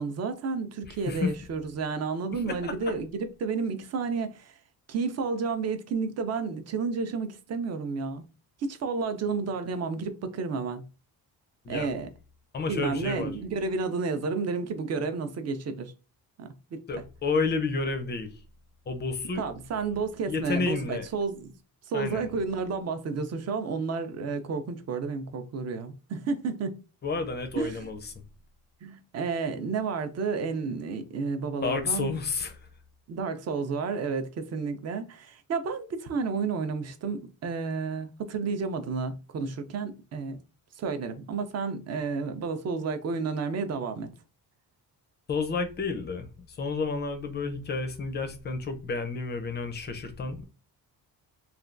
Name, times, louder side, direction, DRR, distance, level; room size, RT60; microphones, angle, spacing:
voice 1, 0.0-4.6 4.9-8.2 8.6-10.8 11.7-12.1 12.7-15.9 16.4-17.0 19.4-21.5 21.9-26.8 27.6-27.9 28.8-32.1 33.1-40.4 40.8-44.1, right 4 dB, 45° right, 0.4 m, -31 dB
voice 2, 2.3-2.7 11.6-11.9 12.5-13.3 16.9-18.4 18.9-19.4 20.3-21.1 21.9-22.4 27.0-28.2 31.6-32.7 45.3-50.4, left 4 dB, 30° left, 0.4 m, -31 dB
3.3 x 2.2 x 2.4 m
cardioid pair, 165°, 38 cm